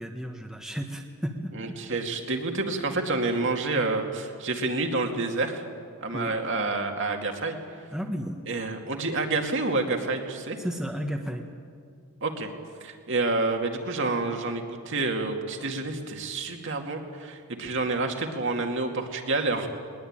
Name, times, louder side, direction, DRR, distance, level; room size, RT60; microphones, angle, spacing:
voice 1, 0.0-1.8 6.1-6.4 7.9-8.3 10.6-11.4, equal, ahead, 2 dB, 1.3 m, -33 dB
voice 2, 1.5-5.6 6.0-7.9 8.5-10.6 12.2-12.5 12.8-19.7, right 3 dB, 55° right, 3 dB, 2.3 m, -28 dB
21.0 x 20.5 x 8.9 m, 2.2 s
head